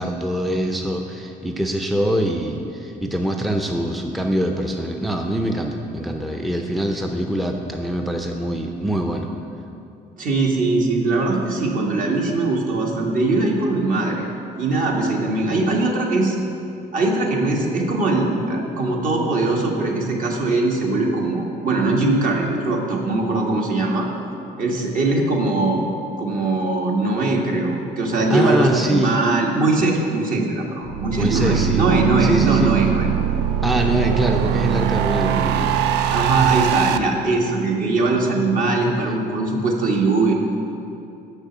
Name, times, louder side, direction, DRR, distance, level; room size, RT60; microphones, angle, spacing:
voice 1, 0.0-9.3 28.3-29.2 31.2-31.8 32.2-32.7 33.6-35.8, right 1 dB, ahead, 2 dB, 0.5 m, -24 dB
voice 2, 10.2-14.3 14.6-16.3 16.9-24.1 24.6-25.8 26.2-33.1 36.1-40.4, right 2 dB, 55° right, -1 dB, 1.5 m, -21 dB
sound 1, 30.8-37.0, right 10 dB, 80° right, 0.4 m, -21 dB
6.5 x 5.9 x 7.3 m, 2.7 s
cardioid pair, 110°, 17 cm